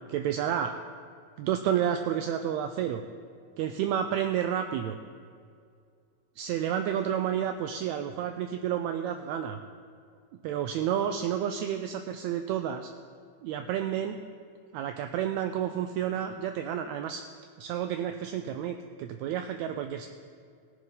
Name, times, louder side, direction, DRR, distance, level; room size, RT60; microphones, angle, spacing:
voice 1, 0.1-0.8 1.4-3.0 3.6-5.0 6.4-9.6 10.4-12.9 13.4-14.2 14.7-17.2 17.6-20.1, right 9 dB, 80° right, 7 dB, 1.7 m, -30 dB
17.0 x 6.9 x 5.3 m, 2.3 s
omnidirectional pair, 3.4 m